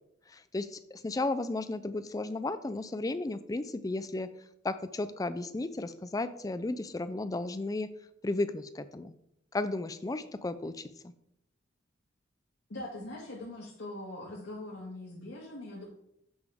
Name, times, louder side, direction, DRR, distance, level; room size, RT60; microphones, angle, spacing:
voice 1, 0.3-4.3 4.6-7.9 8.2-9.1 9.5-11.1, left 2 dB, 20° left, 13 dB, 0.4 m, -34 dB
voice 2, 12.7-15.8, left 1 dB, 80° left, -7 dB, 1.8 m, -42 dB
7.1 x 6.5 x 3.6 m, 0.78 s
head